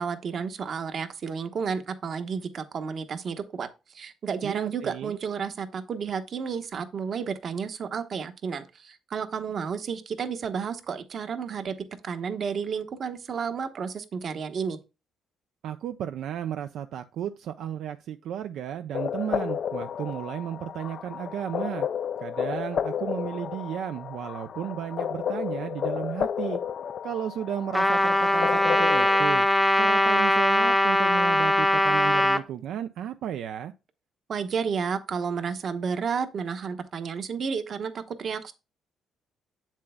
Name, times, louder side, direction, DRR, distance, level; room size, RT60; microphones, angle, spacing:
voice 1, 0.0-3.7 3.9-11.7 12.0-14.8 34.3-38.5, right 6 dB, 50° right, 1.0 m, -31 dB
voice 2, 4.4-5.2 15.6-21.9 22.2-26.6 27.0-29.5 29.8-33.7, right 10 dB, 75° right, 0.5 m, -34 dB
sound 1, 18.9-29.3, left 8 dB, 50° left, 0.3 m, -32 dB
Trumpet, 27.7-32.4, left 1 dB, 5° left, 0.7 m, -21 dB
7.8 x 7.4 x 2.2 m
cardioid pair, 115°, 0 cm